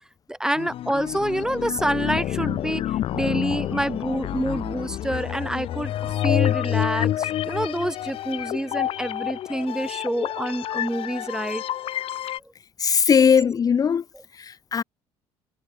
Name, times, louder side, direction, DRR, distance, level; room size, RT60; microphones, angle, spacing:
voice 1, 0.3-2.8 3.1-11.6, right 1 dB, 5° right, 0.9 m, -27 dB
sound 1, 0.6-12.4, left 12 dB, 60° left, 4.2 m, -28 dB
voice 2, 12.8-14.0 14.4-14.8, left 7 dB, 35° left, 0.9 m, -19 dB
cardioid pair, 100°, 11 cm